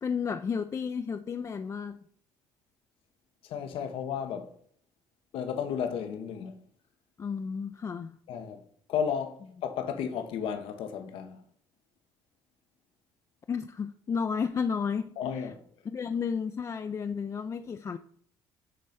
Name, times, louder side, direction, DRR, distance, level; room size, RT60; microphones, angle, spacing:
voice 1, 0.0-2.0 7.2-8.1 13.5-15.2 15.9-18.0, left 6 dB, 35° left, 0.4 m, -32 dB
voice 2, 3.4-4.5 5.3-6.6 8.3-8.6 8.9-11.4 15.2-15.6, left 7 dB, 70° left, 0.7 m, -33 dB
7.7 x 3.1 x 5.5 m
supercardioid pair, 75°, 9 cm